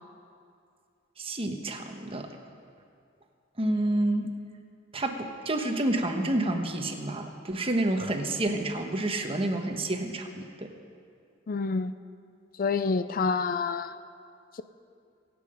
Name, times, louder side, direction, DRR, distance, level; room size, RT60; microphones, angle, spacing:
voice 1, 1.2-2.4 3.6-4.3 4.9-10.7, right 1 dB, 30° right, 4 dB, 1.2 m, -29 dB
voice 2, 11.5-11.9 12.6-13.9 14.5-14.6, left 4 dB, 50° left, 12 dB, 0.4 m, -27 dB
25.0 x 8.8 x 5.2 m, 2.3 s
head